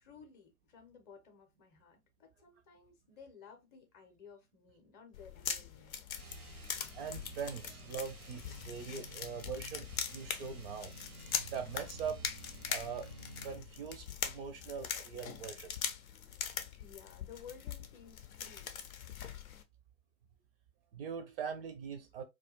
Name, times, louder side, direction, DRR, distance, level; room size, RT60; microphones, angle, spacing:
voice 1, 0.0-6.0 16.8-18.7, left 6 dB, 25° left, 0.6 m, -56 dB
sound 1, 5.1-19.6, left 8 dB, 70° left, 0.5 m, -42 dB
sound 2, 6.1-13.7, right 3 dB, 85° right, 0.8 m, -52 dB
voice 2, 6.9-13.1 13.4-15.7 20.9-22.2, right 6 dB, 45° right, 0.4 m, -42 dB
2.2 x 2.1 x 2.8 m
figure-of-eight pair, 95°, 43 cm